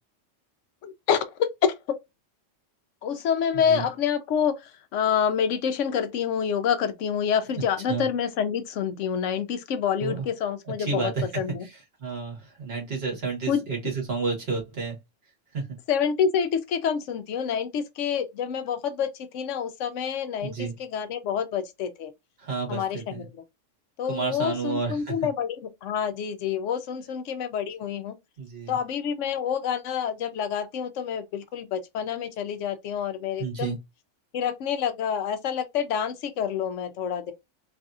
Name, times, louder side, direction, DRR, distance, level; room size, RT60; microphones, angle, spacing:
voice 1, 0.8-1.7 3.0-11.7 13.5-13.6 15.9-22.1 22.7-23.4 24.0-28.1 28.7-33.8 34.3-37.3, left 7 dB, 75° left, 0.9 m, -27 dB
voice 2, 10.8-11.1 12.0-14.9 15.5-15.6 20.4-20.7 22.4-23.2 24.1-25.1 28.4-28.8 33.4-33.8, right 4 dB, 55° right, 1.6 m, -30 dB
3.3 x 2.6 x 2.3 m
omnidirectional pair, 1.3 m